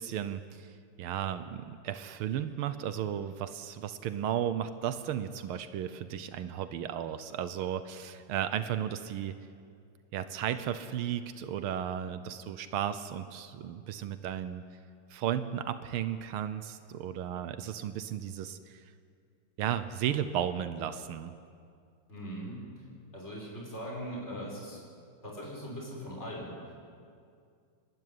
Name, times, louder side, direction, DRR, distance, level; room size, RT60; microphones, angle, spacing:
voice 1, 0.0-9.4 10.1-14.6 15.1-18.9 19.6-21.3, right 10 dB, 85° right, 11 dB, 1.7 m, -34 dB
voice 2, 22.1-22.7 23.1-24.8 25.2-26.5, equal, 30° left, -3 dB, 6.5 m, -40 dB
29.5 x 12.5 x 9.7 m, 2.3 s
omnidirectional pair, 2.3 m